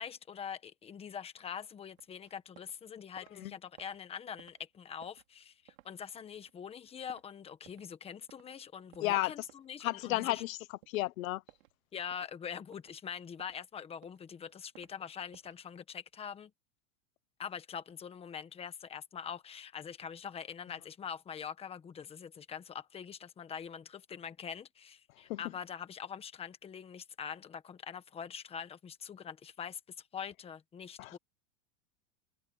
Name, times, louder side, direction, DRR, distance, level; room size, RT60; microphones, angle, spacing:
voice 1, 0.0-10.4 11.9-16.5 17.4-29.8 30.1-31.2, left 7 dB, 15° left, 1.3 m, -44 dB
sound 1, 2.0-2.8 3.1-8.0 8.3-8.5 8.9-10.5 10.8-11.1 11.5-11.8 12.1-12.3 12.7-13.6 13.9-14.9 15.3-15.7, right 16 dB, 85° right, 5.2 m, -61 dB
voice 2, 9.0-9.3 9.8-11.4 25.3-25.4 31.0-31.1, left 17 dB, 90° left, 0.8 m, -33 dB
supercardioid pair, 160°, 39 cm